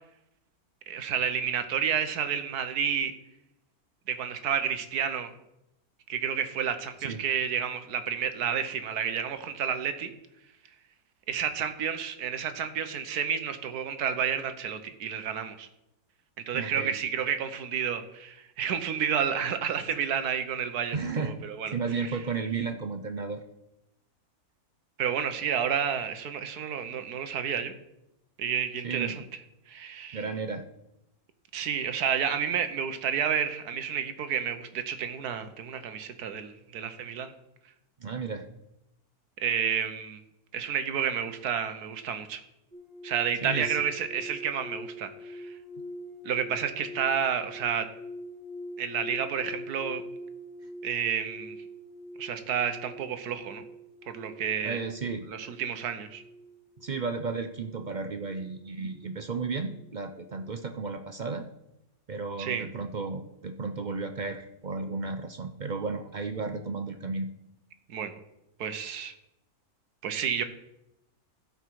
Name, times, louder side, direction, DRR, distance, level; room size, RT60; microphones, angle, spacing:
voice 1, 0.9-3.1 4.1-5.3 6.1-10.1 11.3-15.7 16.4-22.2 25.0-27.7 28.4-29.2 29.7-30.3 31.5-37.3 39.4-40.2 40.5-42.4 43.0-45.5 46.2-47.9 48.8-50.0 50.8-51.6 52.2-53.6 54.1-54.8 55.3-56.2 62.4-62.7 67.9-68.2 68.6-69.1 70.0-70.4, right 8 dB, 85° right, 9 dB, 1.5 m, -30 dB
voice 2, 16.5-17.0 20.9-21.4 21.7-23.4 28.8-29.2 30.1-30.6 38.0-38.4 43.4-43.8 54.6-55.3 56.8-61.5 62.1-67.3, right 4 dB, 50° right, 7 dB, 0.5 m, -33 dB
sound 1, 42.7-60.0 60.3-60.7, left 1 dB, 30° right, 3.0 m, -44 dB
16.0 x 5.6 x 4.7 m, 0.87 s
omnidirectional pair, 1.6 m